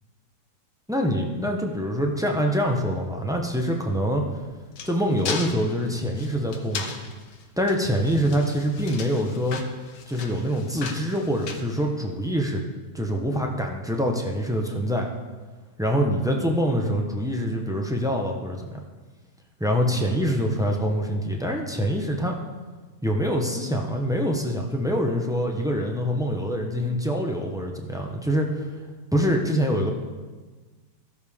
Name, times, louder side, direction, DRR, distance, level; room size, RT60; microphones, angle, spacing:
voice 1, 0.9-4.2 4.8-6.9 7.6-9.6 10.1-12.6 12.9-15.1 15.8-18.8 19.6-22.3 23.0-28.7 29.1-29.9, equal, 5° right, 1 dB, 0.5 m, -25 dB
sound 1, 4.2-12.4, left 5 dB, 85° left, 1.5 m, -37 dB
16.0 x 6.6 x 3.6 m, 1.3 s
omnidirectional pair, 1.8 m